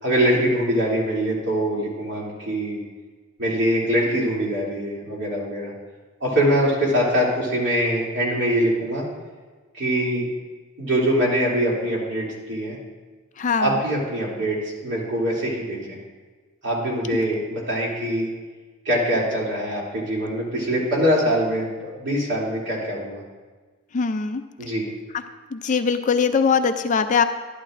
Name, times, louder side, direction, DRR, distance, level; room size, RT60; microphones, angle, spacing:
voice 1, 0.0-2.8 3.4-5.7 6.2-9.0 9.7-10.3 10.8-12.8 13.6-16.0 16.6-18.3 18.8-23.2 24.6-24.8, equal, 60° right, -5 dB, 2.8 m, -23 dB
voice 2, 13.4-13.7 23.9-24.4 25.5-27.2, left 5 dB, 40° left, 8 dB, 0.4 m, -21 dB
11.5 x 11.5 x 2.5 m, 1.4 s
head